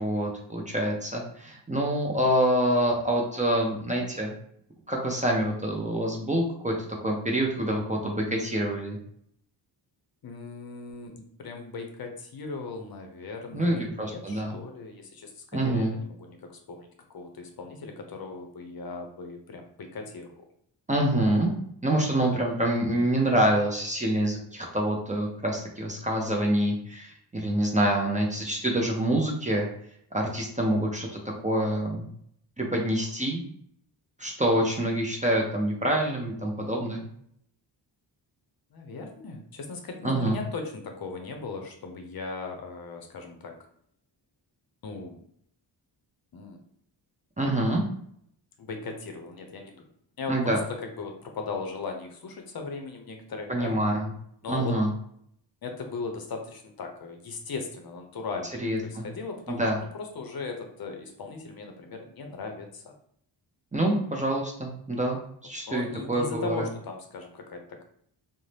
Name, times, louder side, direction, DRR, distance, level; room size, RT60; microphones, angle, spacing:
voice 1, 0.0-4.3 4.9-6.7 7.0-9.0 13.5-14.6 15.5-15.9 20.9-21.5 21.8-29.7 30.1-32.1 32.6-33.4 34.2-37.0 40.0-40.4 47.4-47.8 50.3-50.6 53.5-54.1 54.5-54.9 58.6-59.0 59.5-59.8 63.7-66.7, right 1 dB, 15° right, -1 dB, 0.5 m, -26 dB
voice 2, 10.2-20.4 38.7-43.5 44.8-45.2 46.3-46.6 48.6-49.9 50.2-53.8 54.4-54.8 55.6-59.7 59.9-62.9 65.7-67.8, left 4 dB, 55° left, 4 dB, 0.6 m, -38 dB
2.5 x 2.1 x 3.2 m, 0.67 s
cardioid pair, 75°, 45 cm